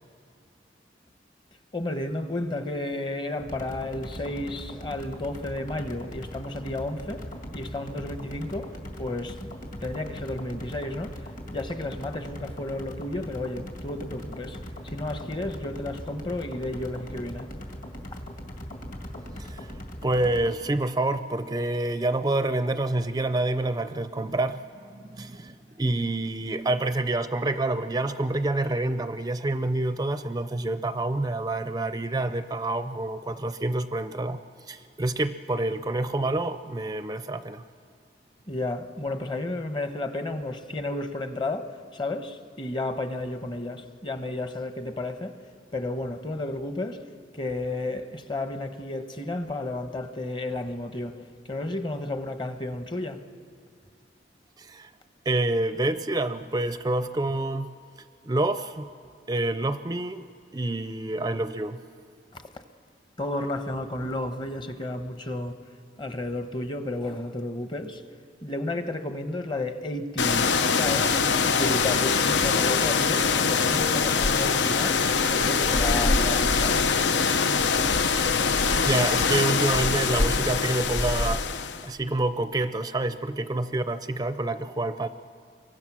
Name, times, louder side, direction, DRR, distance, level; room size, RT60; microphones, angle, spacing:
voice 1, 1.7-7.3 7.5-9.5 9.8-14.6 14.8-17.5 38.5-45.4 45.7-47.0 47.3-51.2 51.5-53.2 62.3-62.5 63.2-65.6 66.0-68.0 68.4-71.2 71.4-76.8, left 2 dB, 25° left, 1.0 m, -32 dB
sound 1, 3.4-20.6, equal, 50° left, 2.5 m, -40 dB
voice 2, 20.0-34.4 34.7-37.6 54.6-54.9 55.3-57.8 58.3-58.9 59.3-60.3 60.5-61.8 78.5-81.4 81.8-85.1, right 2 dB, 20° right, 0.5 m, -27 dB
sound 2, 70.2-81.9, left 5 dB, 85° left, 0.8 m, -23 dB
27.0 x 23.0 x 6.1 m
head